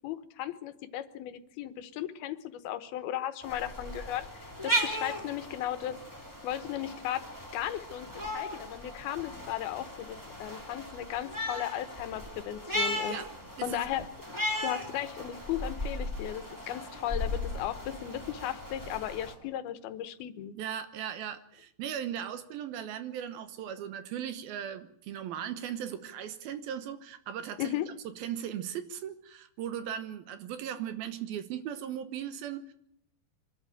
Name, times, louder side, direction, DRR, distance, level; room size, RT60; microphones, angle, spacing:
voice 1, 0.0-4.3 4.6-6.0 6.4-7.3 7.5-13.2 13.6-14.1 14.6-20.5 27.6-27.9, left 12 dB, 75° left, 12 dB, 2.8 m, -36 dB
sound 1, 3.4-19.3, equal, 5° right, 2.6 m, -37 dB
voice 2, 13.6-14.1 20.5-27.8 28.0-32.7, right 9 dB, 75° right, 11 dB, 2.9 m, -38 dB
24.5 x 12.5 x 9.1 m, 0.71 s
omnidirectional pair, 4.6 m